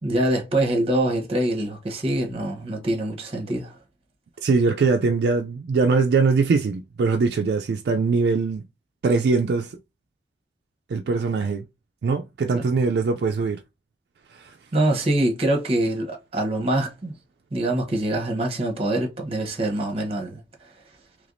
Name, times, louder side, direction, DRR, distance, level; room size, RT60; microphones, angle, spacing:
voice 1, 0.0-3.8 12.5-12.6 14.7-17.1 17.5-20.4, right 1 dB, 30° right, 0.9 m, -24 dB
voice 2, 4.4-8.6 9.0-9.7 10.9-11.7 12.0-13.6 14.3-14.6, right 4 dB, 60° right, 0.3 m, -22 dB
3.3 x 3.1 x 2.5 m
head